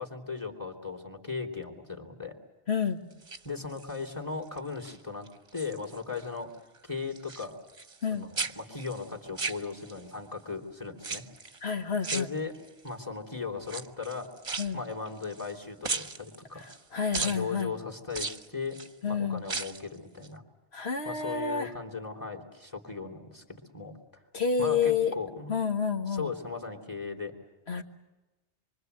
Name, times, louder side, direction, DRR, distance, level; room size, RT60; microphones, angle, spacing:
voice 1, 0.0-2.3 3.4-5.3 5.5-6.5 6.8-7.6 8.1-11.2 12.1-12.5 12.8-14.3 14.7-16.7 17.2-18.8 19.1-20.4 21.0-24.2 24.6-25.5 26.1-27.3, left 4 dB, 20° left, 5 dB, 3.0 m, -37 dB
voice 2, 2.7-3.0 8.0-8.3 11.6-12.3 14.6-14.8 16.9-17.7 19.0-19.4 20.7-21.7 24.3-25.1 25.5-26.3 27.7-27.8, left 6 dB, 90° left, 5 dB, 2.2 m, -29 dB
sound 1, 3.1-4.1 4.6-5.0 5.3-6.3 6.5-8.1 8.3-10.1 11.0-11.6 12.0-12.9 13.6-15.5 15.8-16.8 17.1-17.4 18.1-18.9 19.4-19.9 20.2-20.3, right 4 dB, 35° right, 1.0 m, -37 dB
26.5 x 24.0 x 8.0 m, 1.1 s
omnidirectional pair, 1.0 m